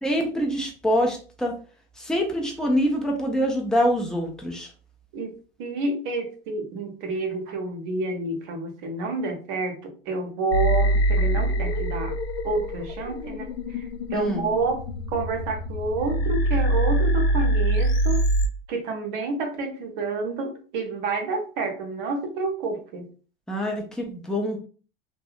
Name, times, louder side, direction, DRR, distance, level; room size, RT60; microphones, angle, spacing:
voice 1, 0.0-1.6 2.0-4.7 14.1-14.5 23.5-24.6, equal, ahead, 0 dB, 0.6 m, -25 dB
voice 2, 5.1-12.2 12.4-13.5 14.1-14.8 15.1-18.3 18.7-23.1, right 3 dB, 60° right, 4 dB, 0.8 m, -29 dB
sound 1, 10.5-18.5, right 1 dB, 85° left, 0.5 m, -24 dB
2.6 x 2.1 x 2.4 m, 0.39 s
hypercardioid pair, 85°, 29 cm